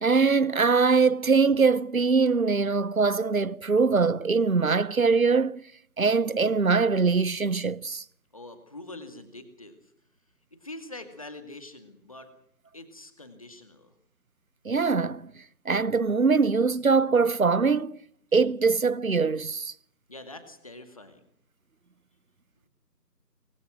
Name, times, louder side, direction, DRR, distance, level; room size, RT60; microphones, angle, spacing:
voice 1, 0.0-5.6 6.0-8.0 14.6-15.3 15.6-18.0 18.3-19.7, right 4 dB, 55° right, 0.9 m, -22 dB
voice 2, 8.3-9.8 10.5-12.3 12.7-13.9 20.1-21.2, left 2 dB, 20° left, 2.2 m, -44 dB
24.5 x 24.0 x 6.1 m
figure-of-eight pair, 170°, 49 cm